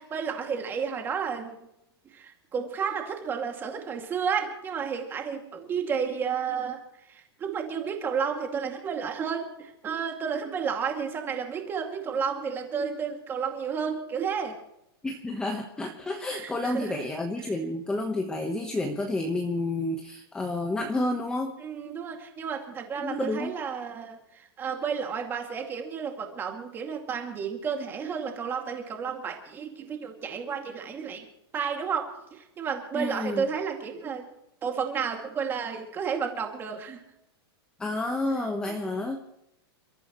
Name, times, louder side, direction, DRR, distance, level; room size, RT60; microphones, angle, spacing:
voice 1, 0.0-1.6 2.1-6.8 7.1-14.6 16.3-17.0 21.6-31.3 31.5-34.3 34.6-37.0 38.6-38.9, right 6 dB, 15° right, 4 dB, 2.4 m, -32 dB
voice 2, 15.0-21.5 23.0-23.5 32.9-33.4 37.8-39.2, left 2 dB, 5° left, 3 dB, 1.2 m, -30 dB
29.5 x 14.0 x 3.1 m, 0.82 s
supercardioid pair, 170°, 13 cm